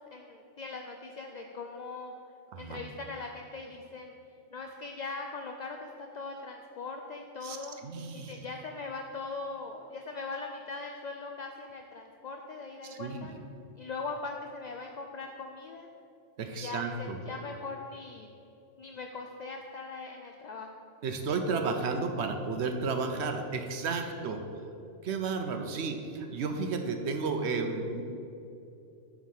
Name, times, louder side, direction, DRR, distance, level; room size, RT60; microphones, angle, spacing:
voice 1, 0.1-2.1 2.6-4.2 4.5-7.8 8.1-13.3 13.8-15.9 16.5-18.3 18.8-20.8, left 3 dB, 60° left, 3 dB, 0.4 m, -40 dB
voice 2, 7.8-8.3 12.8-13.3 16.4-17.2 21.0-24.4 25.0-28.0, right 4 dB, 70° right, 5 dB, 0.9 m, -32 dB
9.2 x 3.7 x 6.3 m, 2.7 s
omnidirectional pair, 1.2 m